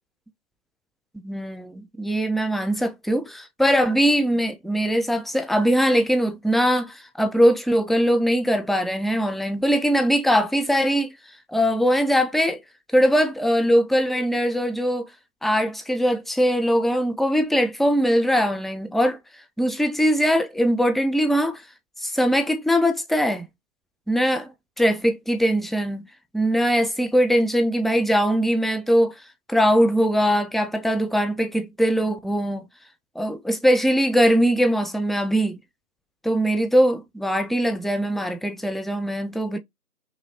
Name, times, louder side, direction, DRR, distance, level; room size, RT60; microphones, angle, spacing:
voice 1, 1.1-11.1 11.5-12.6 12.9-15.1 15.4-19.2 19.6-21.6 22.0-23.5 24.1-24.5 24.8-26.1 26.3-29.1 29.5-32.6 33.2-35.6 36.2-39.6, equal, ahead, 0.4 m, -21 dB
5.5 x 2.1 x 2.7 m
figure-of-eight pair, 180°, 47 cm